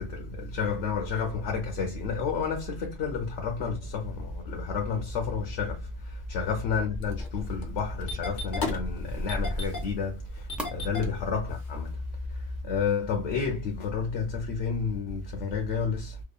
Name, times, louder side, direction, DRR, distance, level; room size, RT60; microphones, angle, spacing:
voice 1, 0.0-16.2, left 5 dB, 80° left, 0.9 m, -31 dB
sound 1, 3.4-12.6, left 3 dB, ahead, 0.3 m, -40 dB
Engine starting, 6.9-11.9, left 2 dB, 50° left, 0.7 m, -34 dB
2.8 x 2.2 x 2.2 m
omnidirectional pair, 1.2 m